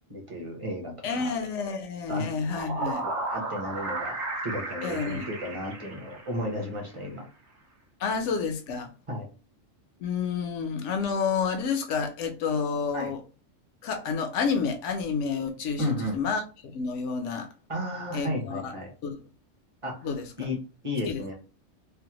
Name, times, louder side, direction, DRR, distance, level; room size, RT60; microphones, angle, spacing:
voice 1, 0.1-1.3 2.1-2.3 3.0-4.2 4.4-7.3 9.1-9.3 12.9-13.1 15.8-16.2 17.7-18.9 19.8-20.1 20.4-20.6 20.8-21.3, left 1 dB, 30° right, 0.8 m, -33 dB
voice 2, 1.0-3.0 4.8-5.3 8.0-8.9 10.0-13.2 13.8-17.5 18.1-18.8 19.0-19.2 20.0-20.5 21.1-21.2, left 5 dB, 70° left, 0.9 m, -29 dB
sound 1, 2.3-6.7, right 3 dB, 85° right, 1.1 m, -34 dB
3.3 x 2.1 x 2.9 m
omnidirectional pair, 1.3 m